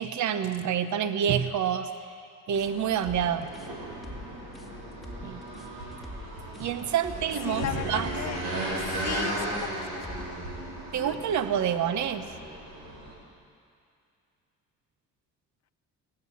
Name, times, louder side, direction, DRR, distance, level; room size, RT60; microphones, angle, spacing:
voice 1, 0.0-1.9 2.5-3.5 5.2-5.4 6.6-8.1 10.9-12.3, right 9 dB, 60° right, 11 dB, 0.8 m, -27 dB
sound 1, 2.5-10.4, left 2 dB, ahead, 2.0 m, -44 dB
sound 2, 2.5-13.1, right 1 dB, 80° right, 4.0 m, -36 dB
voice 2, 7.4-8.5 8.8-10.3 11.0-11.2, left 11 dB, 55° left, 12 dB, 0.7 m, -37 dB
18.5 x 7.7 x 8.3 m, 2.4 s
supercardioid pair, 70°, 33 cm